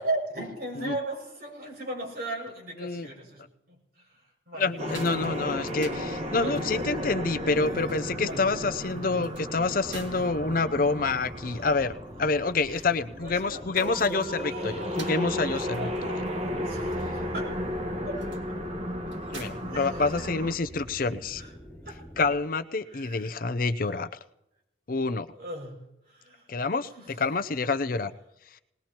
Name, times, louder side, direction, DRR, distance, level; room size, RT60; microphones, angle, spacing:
voice 1, 0.0-5.1 6.4-7.3 8.3-8.4 10.1-10.3 11.4-11.8 12.7-12.8 13.1-13.9 14.2-14.9 15.4-17.6 18.0-18.6 19.6-20.3 21.3-21.5 21.8-22.1 22.9-23.4 23.8-24.0 25.3-26.5 26.9-27.2, right 2 dB, 55° right, 0 dB, 6.1 m, -38 dB
voice 2, 4.6-11.9 12.2-16.1 19.3-21.4 22.2-24.1 24.9-25.3 26.5-26.9 27.2-28.1 28.5-28.6, left 3 dB, 50° left, 11 dB, 0.6 m, -27 dB
sound 1, 4.6-20.6, right 3 dB, 80° right, 1.9 m, -51 dB
sound 2, 4.8-20.5, equal, 35° right, 1.3 m, -34 dB
sound 3, 9.6-22.3, equal, 10° left, 7.4 m, -46 dB
20.5 x 19.5 x 2.9 m, 0.86 s
head